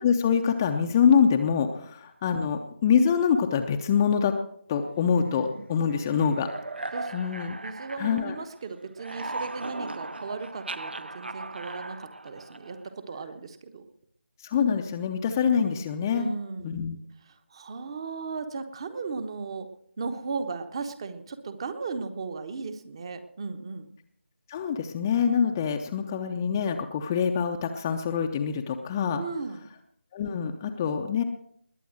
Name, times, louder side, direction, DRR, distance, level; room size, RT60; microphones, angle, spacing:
voice 1, 0.0-4.4 4.7-6.5 7.1-7.6 8.0-8.3 14.4-16.3 16.6-17.0 24.5-29.2 30.1-31.2, left 7 dB, 15° left, 5 dB, 0.6 m, -25 dB
sound 1, 5.1-8.6 8.9-12.9, right 2 dB, 60° right, 0.8 m, -38 dB
voice 2, 6.9-13.9 16.1-16.7 17.5-19.7 20.0-23.9 29.2-29.7, right 4 dB, 25° right, 10 dB, 1.1 m, -36 dB
20.5 x 8.6 x 6.3 m, 0.67 s
figure-of-eight pair, 155°, 6 cm